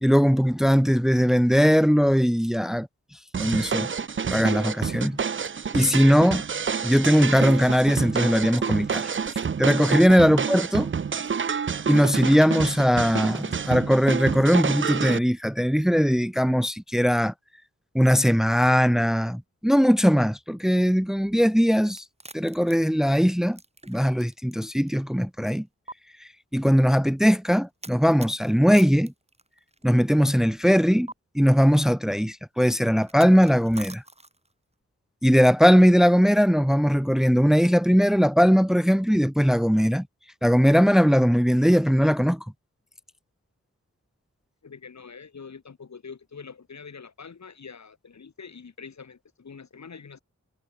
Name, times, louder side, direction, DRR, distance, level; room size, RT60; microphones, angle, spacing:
voice 1, 0.0-2.9 3.4-3.9 4.3-5.2 5.7-6.4 6.8-9.1 9.6-10.9 11.9-17.3 17.9-22.0 22.3-23.6 23.9-25.7 26.2-29.1 29.8-31.1 31.3-34.0 35.2-40.0 40.4-42.4, equal, ahead, 1.3 m, -20 dB
sound 1, 3.3-15.2, right 6 dB, 45° right, 0.7 m, -28 dB
sound 2, 21.9-24.6 24.9-25.0 25.9-26.0 27.8-29.9 31.1-31.2 33.0-34.5, right 2 dB, 20° right, 6.8 m, -44 dB
voice 2, 44.6-50.2, left 5 dB, 70° left, 6.2 m, -44 dB
wide cardioid pair, 130°, 29 cm